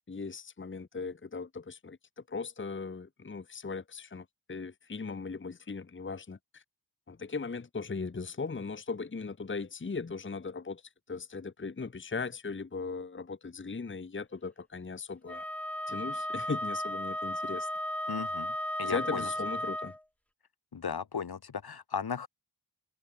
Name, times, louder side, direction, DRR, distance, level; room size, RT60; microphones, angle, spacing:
voice 1, 0.1-2.0 2.3-6.6 7.1-10.8 11.1-15.4 15.9-17.7 18.8-19.9, left 4 dB, 30° left, 1.1 m, -38 dB
Wind instrument woodwind instrument, 15.3-20.0, left 1 dB, 5° left, 0.9 m, -35 dB
voice 2, 18.1-19.3 20.7-22.3, left 6 dB, 65° left, 2.0 m, -36 dB
wide cardioid pair, 115°, 40 cm